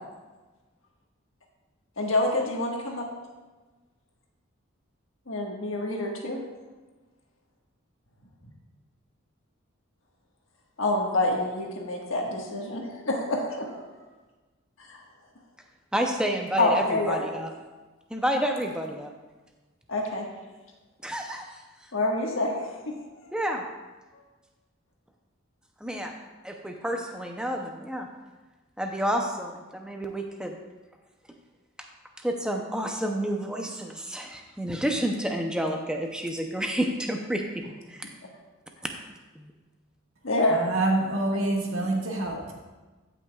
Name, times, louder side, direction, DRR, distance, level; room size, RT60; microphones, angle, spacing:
voice 1, 2.0-3.0 5.3-6.4 10.8-13.8 14.9-15.0 16.6-17.2 19.9-20.2 21.9-23.3 40.2-40.6, left 2 dB, 70° left, -1 dB, 1.5 m, -27 dB
voice 2, 15.9-17.5 18.1-19.1 21.0-21.9 23.3-23.6 25.8-26.1 26.4-28.1 28.8-30.6 31.8-31.9 32.2-38.1 39.3-39.5, equal, 5° right, 2 dB, 0.6 m, -30 dB
voice 3, 40.5-42.4, right 2 dB, 80° right, -1 dB, 1.6 m, -26 dB
15.5 x 5.9 x 2.4 m, 1.2 s
head